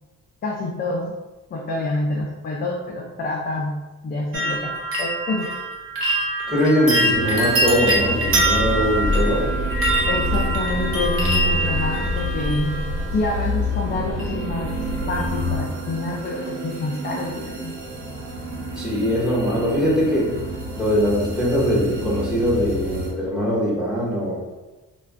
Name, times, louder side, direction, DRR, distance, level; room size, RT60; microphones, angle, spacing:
voice 1, 0.4-1.2 1.5-4.7 5.0-5.5 10.1-12.8 13.1-14.7 15.1-17.7, left 2 dB, 30° left, -1 dB, 0.4 m, -27 dB
sound 1, 4.3-13.3 14.2-14.7 15.0-15.5 15.9-16.0, right 1 dB, 40° right, 0.7 m, -24 dB
voice 2, 6.5-9.5 18.8-20.4 20.7-24.4, equal, 5° right, -5 dB, 0.9 m, -21 dB
sound 2, 7.1-23.1, right 2 dB, 90° right, 0.7 m, -32 dB
sound 3, 8.2-15.6, left 2 dB, 90° left, 0.7 m, -26 dB
2.3 x 2.2 x 3.3 m, 1.2 s
cardioid pair, 100°, 33 cm